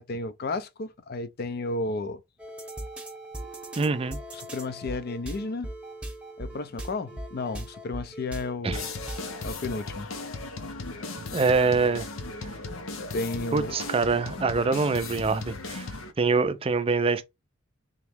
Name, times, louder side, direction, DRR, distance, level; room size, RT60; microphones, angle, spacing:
voice 1, 0.0-2.2 4.3-5.7 6.4-8.8 9.4-10.1 13.1-13.8, left 2 dB, 50° left, 0.5 m, -32 dB
sound 1, 2.4-9.5, right 1 dB, 5° right, 0.9 m, -39 dB
voice 2, 3.8-4.2 8.6-8.8 11.3-12.1 13.5-15.9 16.2-17.2, right 4 dB, 30° right, 0.4 m, -24 dB
sound 2, 8.7-16.1, left 3 dB, 85° left, 0.8 m, -37 dB
3.6 x 3.0 x 3.5 m
head